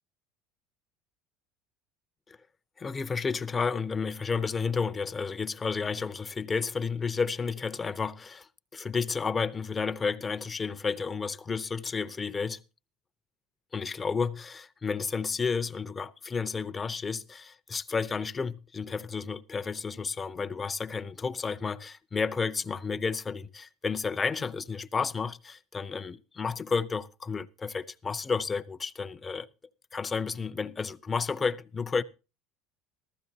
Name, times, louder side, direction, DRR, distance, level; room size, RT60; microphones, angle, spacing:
voice 1, 2.8-12.6 13.7-29.5 29.9-32.0, left 5 dB, 20° left, 0.7 m, -31 dB
15.0 x 14.0 x 2.8 m
supercardioid pair, 125°, 0 cm